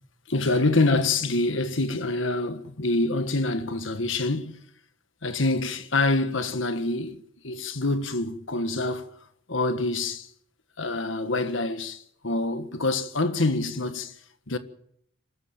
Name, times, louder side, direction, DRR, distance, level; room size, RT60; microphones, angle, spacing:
voice 1, 0.3-4.6 5.2-9.1 9.5-10.3 10.8-14.2 14.5-14.6, left 2 dB, 80° left, 1.6 m, -26 dB
24.0 x 14.0 x 9.0 m
head